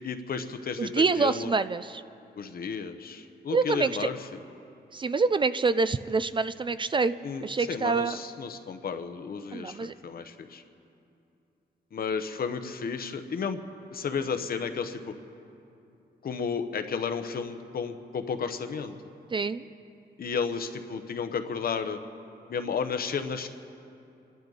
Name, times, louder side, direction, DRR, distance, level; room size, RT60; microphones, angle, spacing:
voice 1, 0.0-1.5 2.4-4.2 7.2-10.6 11.9-13.6 13.9-15.0 16.2-18.9 20.2-22.0 22.5-23.5, left 6 dB, 60° left, 8 dB, 0.9 m, -32 dB
voice 2, 0.8-2.0 3.5-4.1 4.9-7.1 7.4-8.2 9.5-9.9 19.3-19.6, right 4 dB, 30° right, 13 dB, 0.3 m, -26 dB
28.0 x 12.0 x 4.0 m, 2.7 s
wide cardioid pair, 110°, 17 cm